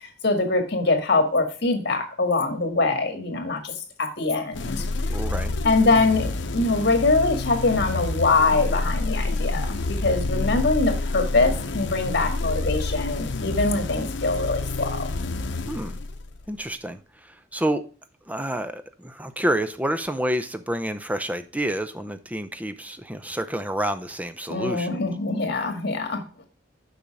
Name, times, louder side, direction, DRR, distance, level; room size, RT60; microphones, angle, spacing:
voice 1, 0.2-3.7 4.0-4.8 5.6-15.1 24.5-26.2, left 3 dB, 60° left, 1.9 m, -23 dB
sound 1, 4.5-16.5, left 2 dB, 85° left, 0.8 m, -28 dB
voice 2, 5.1-5.5 15.7-16.0 16.5-17.9 18.3-24.9, right 1 dB, 10° right, 0.6 m, -29 dB
7.0 x 5.6 x 4.9 m
head